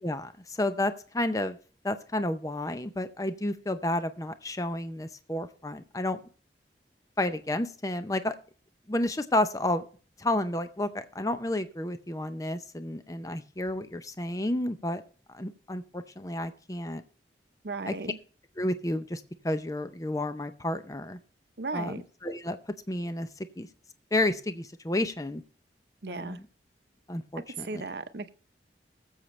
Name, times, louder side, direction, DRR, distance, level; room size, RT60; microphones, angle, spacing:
voice 1, 0.0-1.6 1.8-6.2 7.2-8.4 8.9-9.9 10.2-15.0 15.3-17.0 17.9-18.0 18.6-21.2 21.7-22.6 22.9-23.3 23.6-23.7 24.1-25.4 26.1-26.5 27.1-27.8, left 1 dB, 20° left, 10 dB, 0.6 m, -31 dB
voice 2, 17.6-18.2 21.6-22.0 26.0-26.4 27.4-28.3, right 3 dB, 70° right, 10 dB, 0.8 m, -36 dB
20.5 x 7.3 x 3.2 m, 0.40 s
head